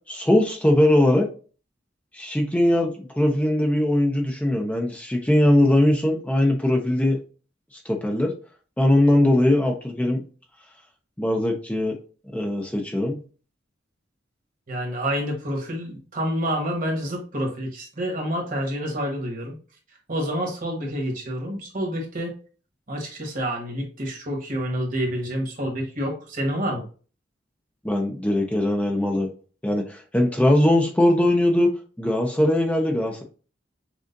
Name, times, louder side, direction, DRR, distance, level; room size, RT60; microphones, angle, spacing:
voice 1, 0.1-1.3 2.1-7.2 7.7-8.3 8.8-10.2 11.2-12.0 12.2-13.2 27.8-29.3 29.6-31.7 32.0-33.2, left 1 dB, 10° left, 2 dB, 0.6 m, -20 dB
voice 2, 14.7-19.5 20.1-22.3 22.9-26.8, equal, 50° right, 1 dB, 1.4 m, -28 dB
6.3 x 2.4 x 2.6 m, 0.37 s
head